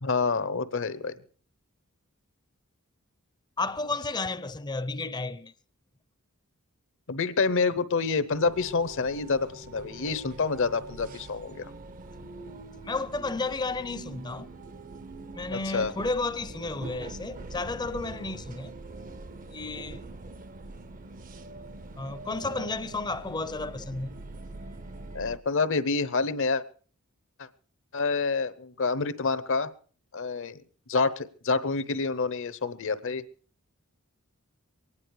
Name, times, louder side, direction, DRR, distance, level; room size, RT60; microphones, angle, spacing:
voice 1, 0.0-1.2 7.1-11.7 15.5-15.9 25.1-26.6 27.4-27.5 27.9-29.7 30.1-30.6 30.9-33.2, left 4 dB, 60° left, 0.8 m, -27 dB
voice 2, 3.6-5.5 12.8-14.5 15.3-18.7 19.5-20.0 22.0-24.1, left 3 dB, 20° left, 0.6 m, -32 dB
sound 1, 8.3-25.4, right 2 dB, 40° right, 0.6 m, -43 dB
23.5 x 9.8 x 4.7 m
head